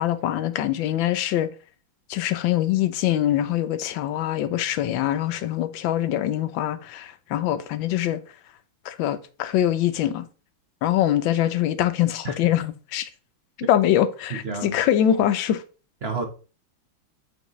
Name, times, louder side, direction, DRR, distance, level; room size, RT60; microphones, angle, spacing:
voice 1, 0.0-1.5 2.1-8.2 8.8-10.2 10.8-13.1 13.7-15.6, left 11 dB, 80° left, 1.4 m, -23 dB
voice 2, 14.3-14.8 16.0-16.2, right 4 dB, 45° right, 0.9 m, -30 dB
7.9 x 4.5 x 3.1 m
omnidirectional pair, 2.1 m